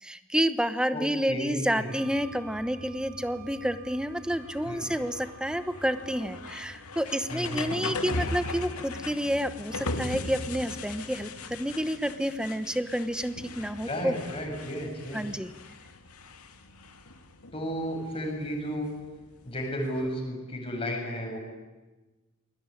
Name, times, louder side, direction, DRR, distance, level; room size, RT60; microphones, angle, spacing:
voice 1, 0.0-14.1 15.1-15.5, equal, 5° right, 11 dB, 1.0 m, -29 dB
voice 2, 0.9-1.9 4.6-4.9 7.3-8.0 13.9-15.3 17.5-18.9 19.5-21.4, equal, 25° left, 0 dB, 7.6 m, -33 dB
Wind instrument woodwind instrument, 1.9-6.4, right 8 dB, 40° right, 3.0 m, -51 dB
sound 1, 2.2-20.1, left 2 dB, 85° left, 2.5 m, -40 dB
27.0 x 21.5 x 9.9 m, 1.2 s
head